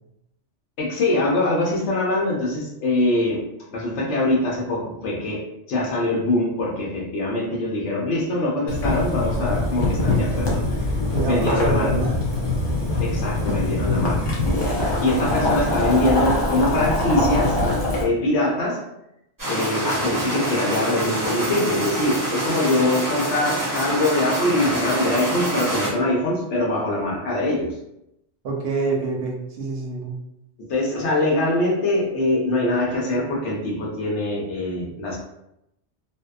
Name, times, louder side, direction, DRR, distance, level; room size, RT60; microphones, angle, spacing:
voice 1, 0.8-3.4 3.7-5.4 5.7-11.9 13.0-17.6 18.0-18.8 19.5-27.7 30.6-35.2, left 1 dB, 75° left, -2 dB, 1.0 m, -23 dB
Boiling, 8.7-18.0, left 2 dB, 35° left, 0.4 m, -23 dB
voice 2, 11.1-12.2 28.4-30.1, right 3 dB, 65° right, -2 dB, 0.8 m, -26 dB
sound 1, 19.4-25.9, right 1 dB, 20° right, 0.6 m, -26 dB
2.6 x 2.1 x 2.2 m, 0.83 s
omnidirectional pair, 1.2 m